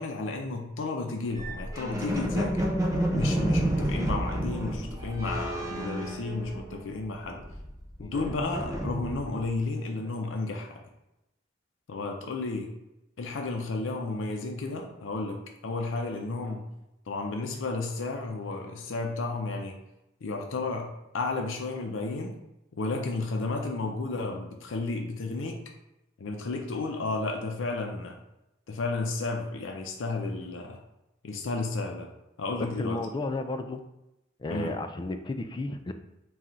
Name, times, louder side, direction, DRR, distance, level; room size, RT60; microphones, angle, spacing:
voice 1, 0.0-2.7 3.1-7.4 8.0-10.8 11.9-12.7 13.2-16.7 17.1-19.8 20.2-22.4 22.7-25.6 26.2-28.2 28.7-30.8 31.2-32.1 32.4-33.0 34.5-34.7, left 3 dB, 90° left, 2 dB, 0.5 m, -32 dB
sound 1, 1.3-6.9 7.2-9.5, right 1 dB, 15° right, 0.6 m, -30 dB
voice 2, 32.6-33.8 34.4-35.9, left 2 dB, 25° left, 7 dB, 0.3 m, -33 dB
3.8 x 2.4 x 4.2 m, 0.91 s
head